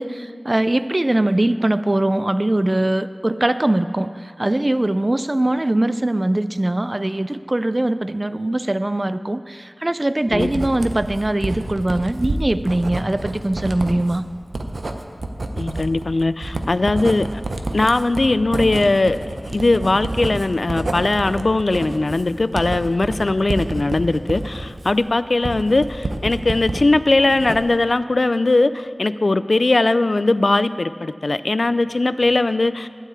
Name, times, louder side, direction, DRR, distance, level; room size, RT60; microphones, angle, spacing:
voice 1, 0.0-14.3, right 1 dB, 40° right, 13 dB, 0.4 m, -21 dB
voice 2, 10.3-10.7 15.6-17.4 17.7-32.9, left 2 dB, 70° left, 14 dB, 0.3 m, -19 dB
Writing, 10.3-26.8 27.2-27.9, right 2 dB, 90° right, 0.6 m, -28 dB
12.0 x 4.6 x 8.4 m, 2.2 s
wide cardioid pair, 45°, 0 cm